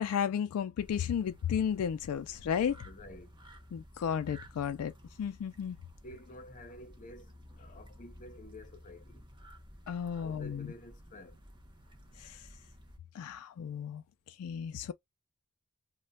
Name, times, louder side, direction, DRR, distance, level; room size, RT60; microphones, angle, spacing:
voice 1, 0.0-2.8 3.7-4.9 5.2-5.8 9.9-10.7 12.2-12.4 13.1-14.0 14.4-14.9, left 8 dB, 80° left, 0.3 m, -33 dB
sound 1, 0.8-13.0, equal, 20° right, 0.7 m, -54 dB
voice 2, 2.8-3.3 6.0-7.3 7.6-9.2 10.2-11.4, left 1 dB, 35° left, 0.6 m, -50 dB
2.1 x 2.0 x 3.8 m
head